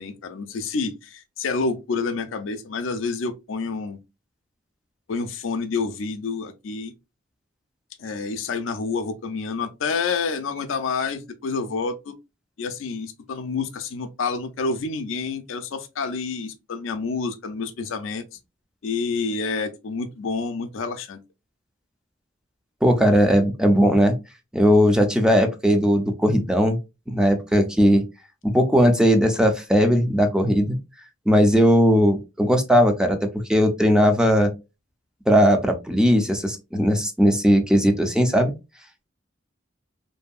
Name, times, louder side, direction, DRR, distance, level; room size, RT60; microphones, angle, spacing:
voice 1, 0.0-4.0 5.1-6.9 8.0-12.2 12.6-18.2 18.8-21.2, left 4 dB, 80° left, 0.4 m, -28 dB
voice 2, 22.8-24.2 24.5-26.8 27.1-28.0 28.4-30.8 31.3-33.2 33.5-34.5 35.3-38.5, equal, 5° right, 0.4 m, -18 dB
2.6 x 2.6 x 2.3 m
head